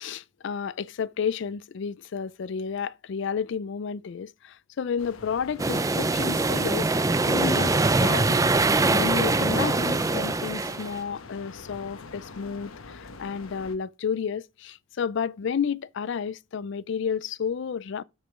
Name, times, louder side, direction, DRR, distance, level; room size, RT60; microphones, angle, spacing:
voice 1, 0.0-6.9 7.2-18.0, left 6 dB, 60° left, 0.4 m, -31 dB
sound 1, 5.0-13.8, left 3 dB, 85° left, 1.1 m, -44 dB
sound 2, 5.6-11.0, right 3 dB, 15° right, 0.4 m, -23 dB
7.4 x 6.7 x 4.8 m
head